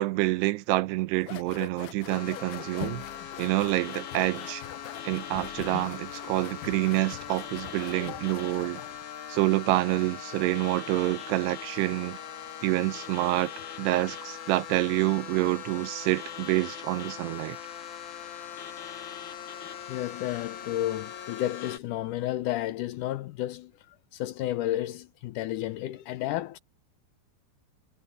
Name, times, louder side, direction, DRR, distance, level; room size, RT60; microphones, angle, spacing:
voice 1, 0.0-3.0 3.4-4.6 5.0-8.8 9.3-12.2 12.6-13.5 13.8-17.6, right 18 dB, 90° right, 2.9 m, -27 dB
sound 1, 1.2-9.0, left 14 dB, 70° left, 2.2 m, -43 dB
sound 2, 2.1-21.8, left 9 dB, 55° left, 3.3 m, -41 dB
voice 2, 19.9-26.6, left 14 dB, 90° left, 1.8 m, -32 dB
omnidirectional pair, 4.7 m